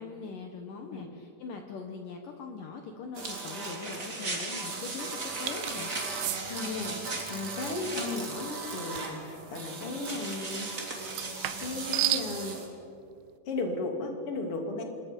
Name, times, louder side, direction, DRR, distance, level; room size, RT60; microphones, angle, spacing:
voice 1, 0.0-5.9, left 5 dB, 85° left, 4 dB, 1.9 m, -41 dB
sound 1, 3.1-12.7, right 4 dB, 60° right, 1.0 m, -39 dB
sound 2, 3.2-8.1 10.1-12.0, right 2 dB, 25° right, 1.9 m, -39 dB
sound 3, 5.5-5.8 6.2-6.4 9.0-9.2 11.1-12.3, right 14 dB, 85° right, 3.3 m, -31 dB
voice 2, 6.4-10.7 11.6-12.6 13.5-14.8, left 3 dB, 40° left, 2 dB, 2.5 m, -35 dB
26.5 x 21.5 x 5.2 m, 2.4 s
omnidirectional pair, 5.6 m